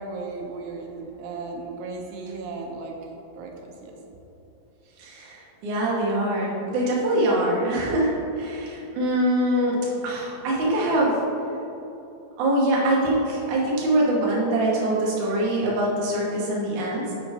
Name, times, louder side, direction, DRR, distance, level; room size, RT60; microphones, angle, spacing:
voice 1, 0.0-3.0 3.4-3.9, right 3 dB, 80° right, 1 dB, 2.7 m, -35 dB
voice 2, 5.0-11.2 12.4-17.1, right 1 dB, 65° right, -5 dB, 2.2 m, -23 dB
7.8 x 5.0 x 3.5 m, 2.9 s
omnidirectional pair, 4.6 m